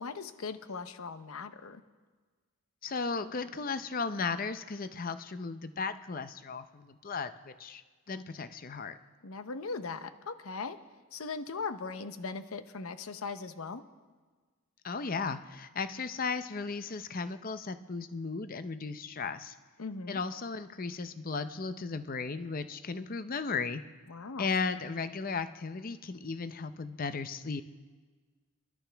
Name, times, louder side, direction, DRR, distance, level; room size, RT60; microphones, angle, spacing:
voice 1, 0.0-1.8 9.2-10.8 11.1-13.9 19.8-20.2 24.1-24.5, left 4 dB, 75° left, 11 dB, 0.7 m, -39 dB
voice 2, 2.8-7.8 8.1-8.9 14.8-19.5 20.1-23.8 24.4-27.6, left 4 dB, 40° left, 11 dB, 0.6 m, -35 dB
29.0 x 11.5 x 3.4 m, 1.4 s
head